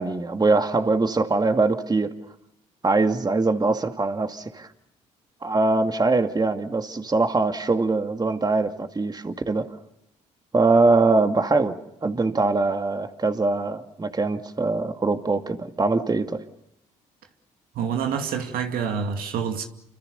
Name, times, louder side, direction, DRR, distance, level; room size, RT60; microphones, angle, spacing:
voice 1, 0.0-2.1 2.8-4.7 5.4-9.7 10.5-16.4, right 3 dB, 25° right, 2.4 m, -22 dB
voice 2, 17.7-19.7, right 7 dB, 70° right, 2.4 m, -27 dB
29.0 x 25.5 x 6.9 m
hypercardioid pair, 55°, 16 cm